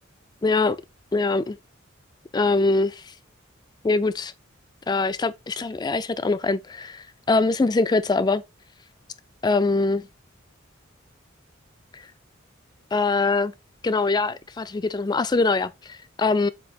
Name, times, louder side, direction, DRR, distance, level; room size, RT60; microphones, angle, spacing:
voice 1, 0.4-0.8 1.1-1.6 2.3-3.1 3.8-4.3 4.9-8.4 9.4-10.1 11.9-12.0 12.9-13.5 13.8-16.5, left 3 dB, 20° left, 0.3 m, -23 dB
7.8 x 5.2 x 2.3 m
head